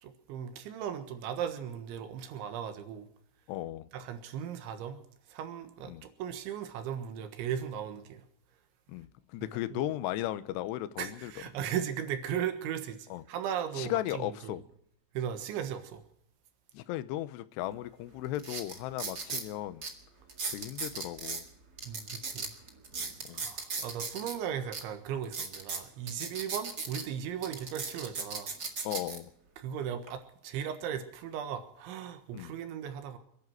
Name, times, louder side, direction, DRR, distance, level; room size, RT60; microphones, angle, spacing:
voice 1, 0.0-3.1 3.9-5.0 5.3-8.2 9.5-9.8 11.0-13.0 13.3-14.6 15.2-16.0 21.9-22.5 23.3-28.5 29.6-33.2, right 9 dB, 85° right, 8 dB, 3.8 m, -37 dB
voice 2, 3.5-3.9 5.9-6.1 8.9-11.3 13.1-13.2 13.7-14.6 16.7-19.8 20.5-21.5 23.3-23.5 28.8-29.3 32.3-32.5, left 14 dB, 80° left, 12 dB, 2.7 m, -36 dB
sound 1, 17.7-17.8 18.3-19.5 19.8-19.9 20.3-21.4 21.8-24.3 24.7-24.8 25.2-27.0 27.4-29.2 29.8-30.1, right 4 dB, 65° right, 0.9 m, -37 dB
28.5 x 11.0 x 4.6 m, 0.72 s
omnidirectional pair, 5.3 m